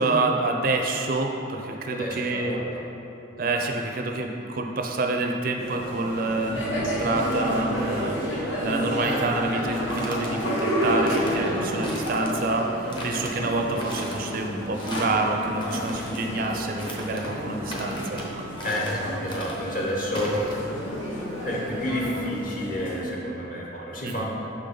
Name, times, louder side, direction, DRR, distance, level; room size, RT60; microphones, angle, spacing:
voice 1, 0.0-2.6 3.4-8.2 8.6-12.7 13.0-18.3 24.0-24.2, right 2 dB, 50° right, 3 dB, 0.4 m, -27 dB
voice 2, 1.9-2.8 18.6-20.3 21.4-24.2, equal, 45° left, -3 dB, 1.0 m, -30 dB
sound 1, 5.6-23.1, equal, 75° left, 1.2 m, -30 dB
sound 2, 9.6-10.3 10.9-11.4 11.8-12.5 12.9-13.3 13.7-14.3 14.7-15.2 15.6-16.2 16.8-17.3 17.7-18.3 18.6-19.0 19.3-19.7 20.1-20.5, left 1 dB, 25° left, 0.7 m, -38 dB
6.0 x 5.0 x 3.8 m, 2.8 s
head